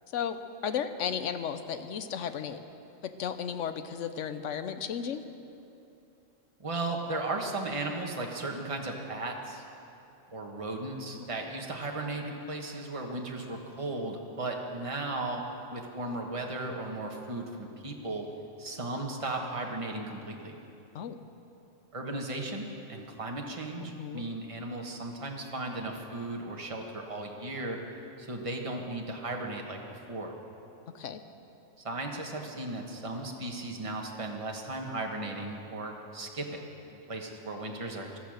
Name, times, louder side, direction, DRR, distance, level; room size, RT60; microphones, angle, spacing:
voice 1, 0.1-2.6 3.0-5.2 20.9-21.2 24.0-24.2 30.9-31.2, left 8 dB, 70° left, 10 dB, 1.1 m, -34 dB
voice 2, 6.6-9.6 10.3-15.4 15.7-18.3 18.6-20.6 21.9-27.8 28.2-30.3 31.8-36.6 36.9-38.2, right 2 dB, 25° right, 1 dB, 1.4 m, -36 dB
16.0 x 12.0 x 6.5 m, 2.8 s
omnidirectional pair, 1.3 m